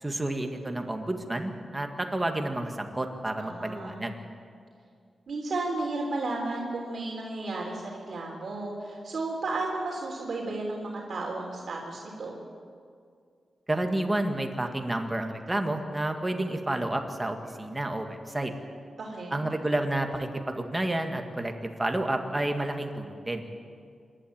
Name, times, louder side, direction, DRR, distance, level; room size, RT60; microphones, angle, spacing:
voice 1, 0.0-4.2 13.7-18.5 19.3-23.5, right 1 dB, 15° right, 4 dB, 1.9 m, -30 dB
voice 2, 3.4-4.1 5.3-12.4 19.0-19.5, right 2 dB, 60° right, -1 dB, 3.4 m, -33 dB
27.0 x 12.0 x 8.9 m, 2.3 s
wide cardioid pair, 125°, 0 cm